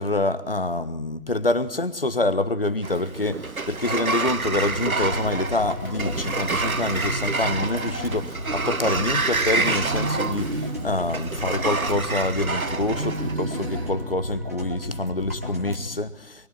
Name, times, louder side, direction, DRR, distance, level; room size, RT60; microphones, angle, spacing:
voice 1, 0.0-16.5, left 2 dB, 40° left, 1.4 m, -26 dB
Sliding door, 2.8-13.3, right 3 dB, 65° right, 1.6 m, -28 dB
sound 1, 4.4-15.8, left 1 dB, 10° right, 1.5 m, -34 dB
sound 2, 6.3-8.4 9.5-12.3 12.8-15.0, right 2 dB, 45° right, 1.9 m, -35 dB
25.0 x 23.5 x 9.3 m
figure-of-eight pair, 170°, 46 cm